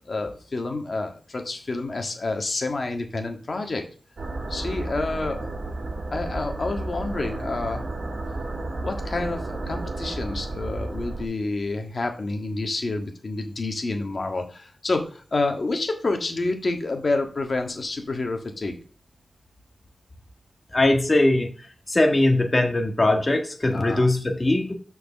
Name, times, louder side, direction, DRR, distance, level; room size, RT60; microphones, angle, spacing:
voice 1, 0.0-3.8 4.5-5.5 6.1-7.8 8.8-18.7 23.7-24.1, left 2 dB, 45° left, 4 dB, 1.7 m, -28 dB
sound 1, 4.2-11.2, right 2 dB, 55° right, 2.0 m, -32 dB
voice 2, 20.7-21.5 21.9-24.7, left 2 dB, 25° left, 4 dB, 1.7 m, -20 dB
6.5 x 4.7 x 6.1 m, 0.39 s
wide cardioid pair, 110°, 0 cm